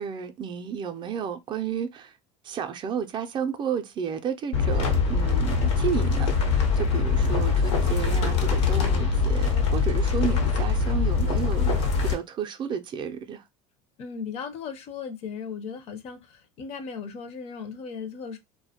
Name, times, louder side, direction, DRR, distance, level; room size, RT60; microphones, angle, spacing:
voice 1, 0.0-2.1 2.4-13.4, right 7 dB, 35° right, 0.4 m, -32 dB
sound 1, 4.5-12.1, left 5 dB, 85° left, 0.7 m, -23 dB
voice 2, 14.0-18.4, left 6 dB, 45° left, 0.5 m, -37 dB
2.3 x 2.1 x 2.7 m
supercardioid pair, 110°, 14 cm